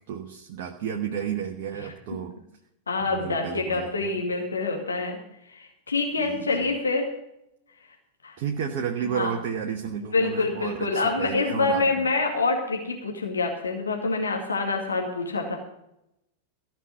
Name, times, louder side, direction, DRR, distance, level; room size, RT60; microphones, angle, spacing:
voice 1, 0.1-2.3 3.0-4.2 6.2-6.8 8.4-12.1, right 8 dB, 45° right, 2 dB, 1.2 m, -32 dB
voice 2, 2.9-5.2 5.5-7.1 8.2-8.4 9.0-9.3 10.0-15.6, left 3 dB, 75° left, 1 dB, 2.2 m, -26 dB
15.5 x 5.9 x 9.3 m, 0.82 s
figure-of-eight pair, 90°, 0 cm